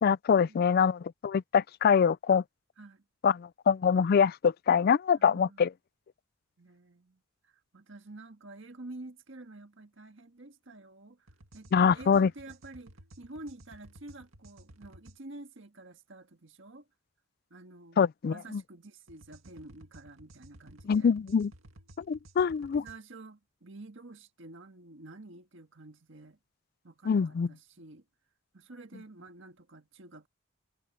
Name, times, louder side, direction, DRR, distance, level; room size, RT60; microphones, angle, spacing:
voice 1, 0.0-2.4 3.2-5.7 11.7-12.3 18.0-18.6 20.9-21.5 22.1-22.8 27.1-27.5, left 6 dB, 50° left, 0.3 m, -24 dB
voice 2, 5.2-5.6 6.6-11.3 11.5-16.9 17.5-18.0 18.2-21.1 22.7-26.4 26.8-28.0 28.5-30.3, right 2 dB, 65° right, 1.6 m, -49 dB
sound 1, 11.3-15.2 19.1-23.0, right 1 dB, 85° right, 2.1 m, -55 dB
head